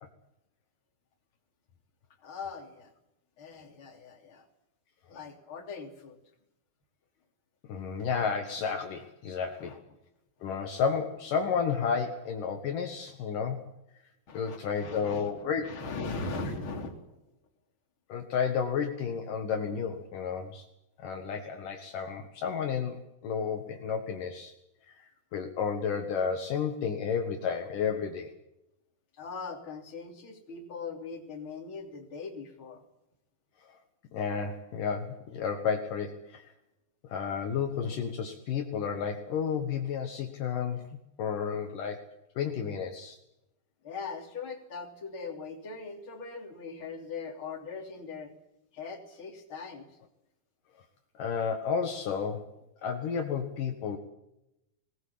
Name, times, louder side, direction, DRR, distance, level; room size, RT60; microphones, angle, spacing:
voice 1, 2.2-2.9 3.4-4.5 5.1-6.2 9.6-9.8 10.4-10.5 14.3-17.1 29.1-32.8 43.8-48.3 48.7-50.0, left 4 dB, 35° left, 2 dB, 3.6 m, -40 dB
voice 2, 7.7-9.8 10.4-13.6 14.3-15.6 18.1-20.7 21.0-24.5 24.9-28.3 34.1-36.5 37.1-40.9 41.2-42.1 42.4-43.2 51.2-52.5 52.8-54.0, left 6 dB, 65° left, 4 dB, 3.0 m, -32 dB
21.0 x 19.0 x 8.6 m, 0.87 s
omnidirectional pair, 4.3 m